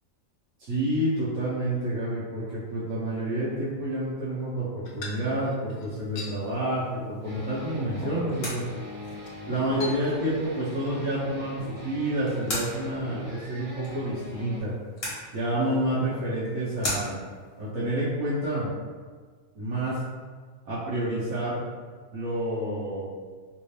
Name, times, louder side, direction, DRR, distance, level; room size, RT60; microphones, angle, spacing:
voice 1, 0.6-8.6 9.5-14.7 15.3-17.2 17.6-18.7 19.5-20.0 20.7-21.6 22.1-23.2, right 1 dB, 90° right, -11 dB, 1.3 m, -29 dB
sound 1, 4.9-6.4 6.9-7.2 7.5-7.6 8.0-8.5 9.0-9.3 9.8-10.5 10.7-11.1, left 3 dB, 90° left, 1.1 m, -40 dB
sound 2, 6.0-17.7, left 1 dB, 45° left, 1.3 m, -41 dB
sound 3, 7.2-14.6, equal, 30° right, 0.7 m, -42 dB
3.4 x 2.7 x 3.1 m, 1.5 s
omnidirectional pair, 1.4 m